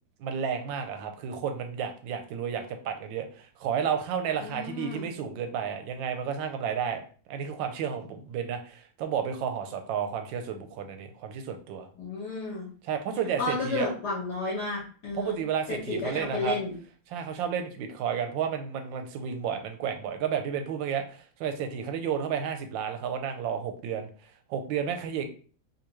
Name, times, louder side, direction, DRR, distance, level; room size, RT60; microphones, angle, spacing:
voice 1, 0.2-11.9 12.8-13.9 15.1-16.6 17.1-25.3, right 7 dB, 75° right, 6 dB, 1.2 m, -32 dB
voice 2, 4.4-5.1 12.0-12.7 13.4-15.4 15.7-16.7, left 3 dB, 55° left, -5 dB, 1.4 m, -32 dB
3.7 x 2.8 x 3.0 m, 0.41 s
omnidirectional pair, 2.4 m